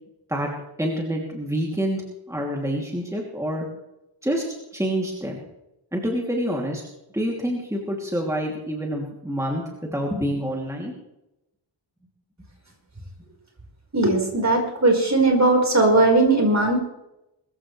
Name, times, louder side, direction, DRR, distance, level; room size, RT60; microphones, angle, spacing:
voice 1, 0.8-2.0 2.3-3.7 4.2-4.4 4.7-5.4 5.9-6.8 7.1-9.6 9.9-10.9, equal, 5° right, -2 dB, 2.9 m, -27 dB
voice 2, 13.9-16.8, right 2 dB, 35° right, 0 dB, 4.7 m, -18 dB
22.5 x 14.5 x 3.3 m, 0.89 s
wide cardioid pair, 90°, 46 cm